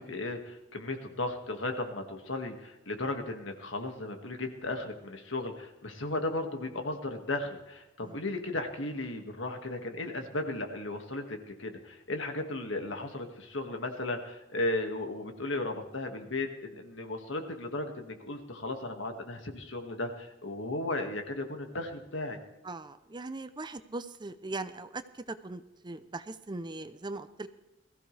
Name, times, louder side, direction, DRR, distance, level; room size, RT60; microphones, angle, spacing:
voice 1, 0.1-22.4, left 2 dB, 70° left, 5 dB, 2.0 m, -35 dB
voice 2, 22.6-27.5, right 2 dB, 25° right, 12 dB, 0.6 m, -40 dB
21.0 x 15.0 x 3.4 m, 0.99 s
head